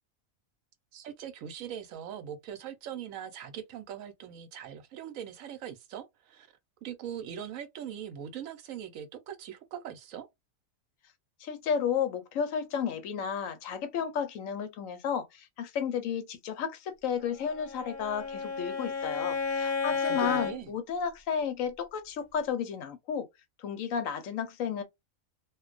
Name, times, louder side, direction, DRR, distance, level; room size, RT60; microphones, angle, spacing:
voice 1, 0.9-6.5 6.8-10.3 19.8-20.7, right 9 dB, 75° right, 1.0 m, -41 dB
voice 2, 11.4-23.3 23.6-24.8, left 7 dB, 75° left, 1.0 m, -32 dB
Bowed string instrument, 17.4-20.6, left 4 dB, 35° left, 1.0 m, -32 dB
2.4 x 2.2 x 2.3 m
omnidirectional pair, 1.4 m